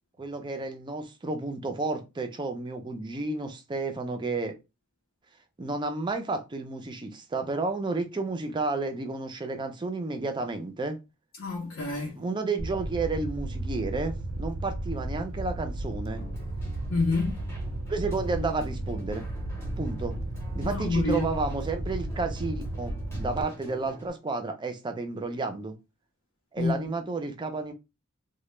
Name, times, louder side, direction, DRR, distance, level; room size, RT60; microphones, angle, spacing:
voice 1, 0.2-4.6 5.6-11.0 12.2-16.2 17.9-19.3 19.8-20.2 20.5-25.7 26.5-27.7, right 3 dB, 20° right, 0.4 m, -31 dB
voice 2, 11.4-12.2 16.9-17.4 20.6-21.3 26.6-26.7, left 3 dB, 70° left, 0.6 m, -28 dB
Fire, 12.6-23.4, right 1 dB, 80° right, 0.4 m, -34 dB
Keyboard (musical), 16.1-24.1, equal, 10° left, 0.7 m, -45 dB
2.1 x 2.0 x 3.1 m
head